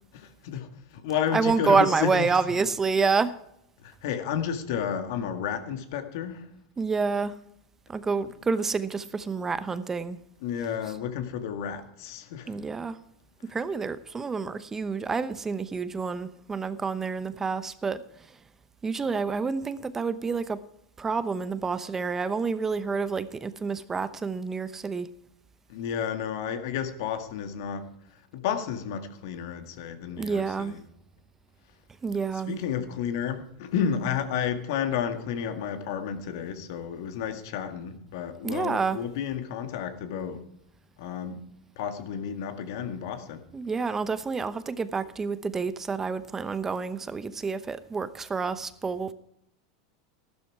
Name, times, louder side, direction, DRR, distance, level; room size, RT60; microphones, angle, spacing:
voice 1, 0.1-2.4 3.8-6.5 10.4-12.6 25.7-30.8 32.5-40.4 41.0-41.5 41.8-43.4, left 8 dB, 65° left, 1.9 m, -31 dB
voice 2, 1.3-3.3 6.8-7.3 7.9-10.2 12.5-13.0 13.5-18.4 18.8-20.6 21.0-25.1 30.2-30.8 32.0-32.6 38.4-39.0 43.5-49.1, right 4 dB, 20° right, 0.9 m, -28 dB
14.0 x 12.0 x 4.8 m
hypercardioid pair, 100°, 2 cm